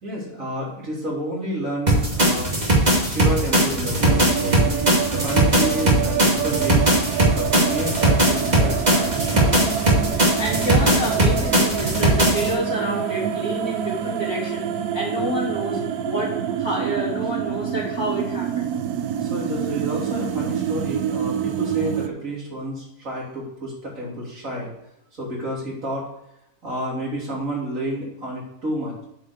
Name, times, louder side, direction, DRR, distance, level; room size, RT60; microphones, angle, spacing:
voice 1, 0.0-2.6 3.0-4.7 5.1-7.0 7.3-9.6 19.2-24.7 25.2-26.1 26.6-29.0, equal, 60° right, -4 dB, 3.6 m, -30 dB
sound 1, 1.9-12.5, right 1 dB, 25° right, 2.5 m, -19 dB
sound 2, 4.0-22.1, right 9 dB, 80° right, 1.2 m, -27 dB
voice 2, 10.1-16.3 16.6-18.7, equal, 60° left, -5 dB, 3.7 m, -28 dB
8.7 x 5.6 x 6.6 m, 0.83 s
omnidirectional pair, 1.6 m